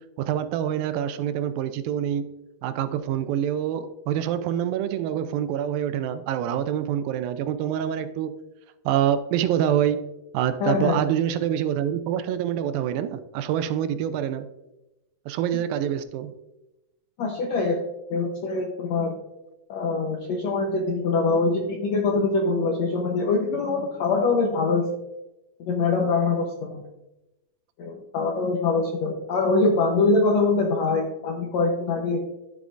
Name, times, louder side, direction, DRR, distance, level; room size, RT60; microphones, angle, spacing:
voice 1, 0.2-2.3 2.6-8.3 8.9-10.1 10.3-14.5 15.3-16.3, right 10 dB, 80° right, 11 dB, 2.2 m, -26 dB
voice 2, 10.6-11.0 17.2-17.8 18.1-19.1 19.7-24.9 25.7-26.8 27.8-32.2, left 3 dB, 75° left, 0 dB, 1.6 m, -23 dB
10.5 x 8.4 x 2.5 m, 0.96 s
omnidirectional pair, 4.2 m